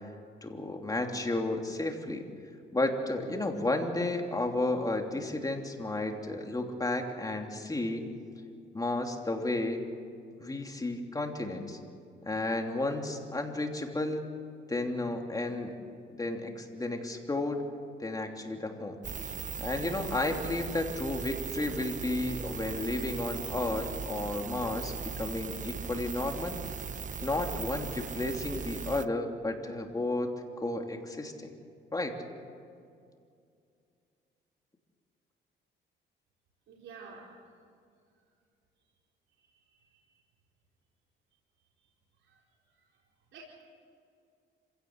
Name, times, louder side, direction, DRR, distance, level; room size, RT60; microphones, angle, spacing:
voice 1, 0.4-2.3 2.7-8.0 8.7-9.8 10.4-11.8 12.2-14.3 14.7-15.7 16.1-17.6 18.0-19.0 19.6-26.6 27.2-30.3 30.6-31.5 31.9-32.2, left 2 dB, 20° left, 3 dB, 3.0 m, -32 dB
sound 1, 19.0-29.1, right 6 dB, 40° right, 0.7 m, -38 dB
voice 2, 36.7-37.3 39.5-40.0 42.3-42.4 43.3-43.6, right 4 dB, 75° right, -4 dB, 4.4 m, -50 dB
26.5 x 16.5 x 8.0 m, 2.3 s
cardioid pair, 90°, 20 cm